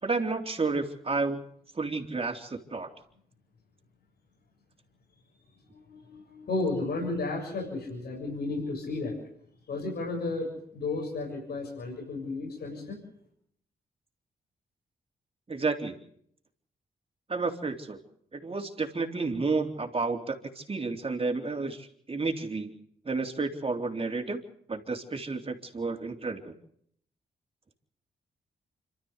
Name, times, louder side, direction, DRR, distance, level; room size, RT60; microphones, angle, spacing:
voice 1, 0.0-1.4 1.7-2.9 15.5-16.0 17.3-18.0 18.3-22.7 23.0-24.4 24.7-26.5, right 3 dB, 35° right, 4 dB, 3.6 m, -31 dB
voice 2, 5.7-9.2 9.7-13.0, left 3 dB, 75° left, -1 dB, 7.1 m, -33 dB
26.0 x 13.5 x 8.2 m, 0.66 s
supercardioid pair, 55°, 17 cm